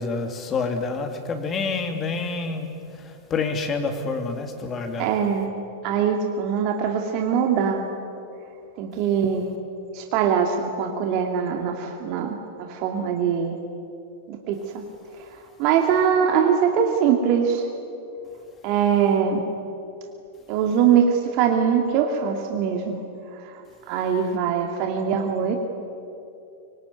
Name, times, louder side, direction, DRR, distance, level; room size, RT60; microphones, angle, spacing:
voice 1, 0.0-2.7 3.3-5.1, left 4 dB, 25° left, 5 dB, 3.0 m, -27 dB
voice 2, 5.0-5.5 5.8-7.8 8.8-9.5 9.9-13.5 14.3-14.8 15.6-17.7 18.6-19.4 20.5-23.0 23.5-23.6 23.9-25.5, right 7 dB, 45° right, 3 dB, 2.4 m, -22 dB
25.0 x 24.0 x 9.5 m, 2.7 s
figure-of-eight pair, 90°, 0 cm